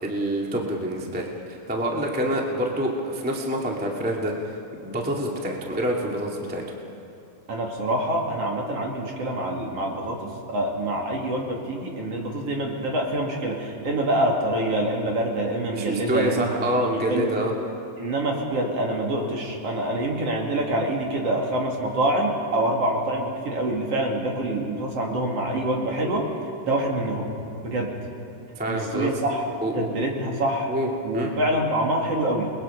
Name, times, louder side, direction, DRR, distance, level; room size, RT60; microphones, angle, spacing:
voice 1, 0.0-4.6 4.8-6.6 15.7-17.5 28.5-29.1 29.6-29.9 30.7-30.9 31.1-31.3, right 1 dB, 5° right, -1 dB, 1.5 m, -27 dB
voice 2, 7.5-10.2 10.5-17.3 18.0-26.3 26.7-27.3 27.6-27.9 28.7-29.4 29.7-30.7 31.0-32.5, right 1 dB, 55° right, 0 dB, 3.4 m, -26 dB
29.5 x 21.0 x 5.6 m, 2.7 s
omnidirectional pair, 3.4 m